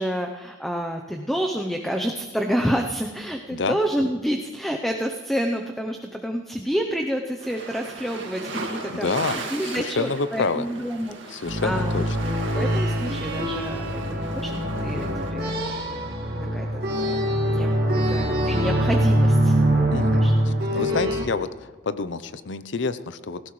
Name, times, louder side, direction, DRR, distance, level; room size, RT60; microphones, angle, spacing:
voice 1, 0.0-12.0 12.5-16.1 16.5-16.7 16.9-17.2 17.5-17.8 18.1-19.5 19.8-20.9, equal, ahead, 2 dB, 0.6 m, -29 dB
sound 1, 7.4-15.3, right 3 dB, 75° right, 2.0 m, -37 dB
voice 2, 8.9-10.7 11.3-12.0 19.9-23.4, left 4 dB, 70° left, 13 dB, 0.6 m, -28 dB
sound 2, 11.5-21.2, equal, 50° right, 2.0 m, -23 dB
18.0 x 15.5 x 3.2 m, 1.4 s
head